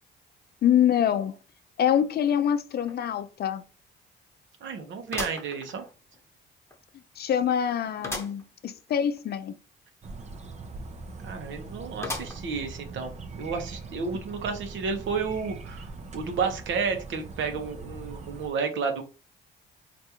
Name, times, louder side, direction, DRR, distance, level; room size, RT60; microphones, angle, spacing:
voice 1, 0.6-1.4 1.8-3.6 7.2-9.5, left 9 dB, 55° left, 0.5 m, -25 dB
sound 1, 2.9-3.0 3.4-3.5 5.1-6.2 6.7-6.8 8.0-8.4 8.9-9.0 9.2-9.3 12.0-12.6 13.2-13.3 14.3-14.4, left 2 dB, 15° left, 0.9 m, -36 dB
voice 2, 4.6-5.8 11.2-15.9 16.1-19.0, right 5 dB, 75° right, 0.8 m, -31 dB
sound 2, 10.0-18.5, right 3 dB, 35° right, 0.5 m, -41 dB
3.4 x 2.6 x 2.8 m
cardioid pair, 90°, 20 cm